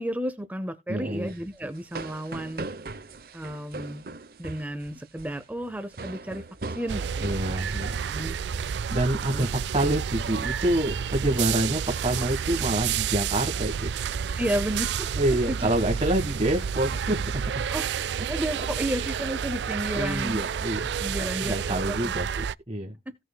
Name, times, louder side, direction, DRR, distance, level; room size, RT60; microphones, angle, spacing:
voice 1, 0.0-2.7 3.3-4.1 4.4-7.6 8.1-8.4 9.3-9.5 14.4-15.1 15.5-15.7 17.7-17.9 18.3-20.4 21.0-22.1 23.1-23.2, equal, 10° right, 0.5 m, -32 dB
voice 2, 0.9-1.3 7.2-7.9 8.9-14.2 15.2-17.6 18.9-19.3 19.9-20.9 21.2-22.9, right 1 dB, 30° right, 1.4 m, -27 dB
sound 1, 1.1-9.2 9.5-9.8 10.1-10.5 10.9-12.1, right 3 dB, 55° right, 0.7 m, -41 dB
sound 2, 6.9-22.5, right 7 dB, 80° right, 0.3 m, -30 dB
16.5 x 6.1 x 2.2 m
head